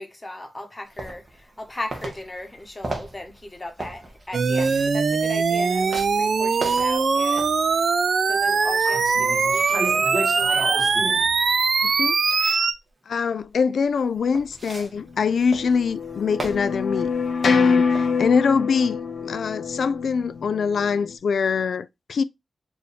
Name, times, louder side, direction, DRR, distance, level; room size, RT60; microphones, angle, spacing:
voice 1, 0.0-7.5 8.3-10.8, left 1 dB, 20° left, 1.0 m, -37 dB
sound 1, 1.0-1.7 1.9-7.8 8.3-12.2 14.0-18.2, right 2 dB, 35° right, 1.1 m, -35 dB
sound 2, 4.3-12.7, right 5 dB, 60° right, 0.5 m, -21 dB
voice 2, 11.8-12.6 13.1-17.1 17.4-22.2, left 5 dB, 90° left, 0.3 m, -24 dB
sound 3, 15.2-21.1, left 5 dB, 65° left, 0.7 m, -25 dB
4.6 x 2.7 x 3.2 m
wide cardioid pair, 160°, 0 cm